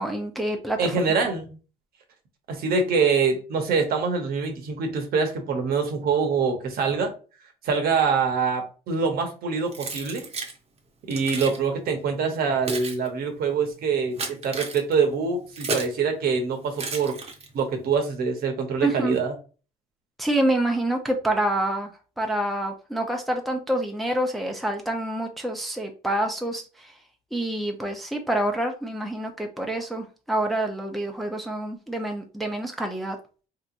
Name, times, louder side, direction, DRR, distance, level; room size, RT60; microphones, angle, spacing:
voice 1, 0.0-0.9 18.8-19.2 20.2-21.9 22.2-26.9 27.3-33.2, right 1 dB, ahead, 2 dB, 0.6 m, -27 dB
voice 2, 0.8-1.5 2.5-7.1 7.6-10.3 11.1-17.2 17.5-19.3, right 5 dB, 65° right, 4 dB, 1.0 m, -24 dB
Keys jangling, 9.7-10.6 11.1-11.6 12.3-16.0 16.7-17.7, right 3 dB, 35° right, 0.9 m, -33 dB
3.5 x 2.9 x 2.5 m, 0.35 s
cardioid pair, 110°, 17 cm